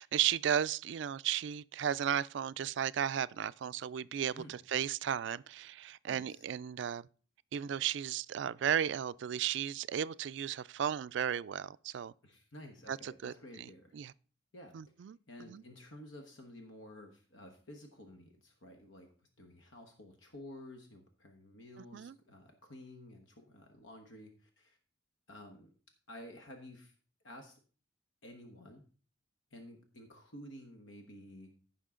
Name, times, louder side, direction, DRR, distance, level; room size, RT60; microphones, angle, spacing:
voice 1, 0.0-7.0 7.5-12.1 12.9-13.7 13.9-14.1 14.7-15.2 15.5-15.6 21.9-22.1, right 9 dB, 65° right, 0.3 m, -34 dB
voice 2, 6.1-6.5 12.2-13.9 14.5-14.8 15.3-24.8 25.3-25.7 26.1-26.9 27.2-27.6 28.2-28.8 29.5-31.5, left 1 dB, 75° left, 1.3 m, -52 dB
15.5 x 5.7 x 3.7 m
head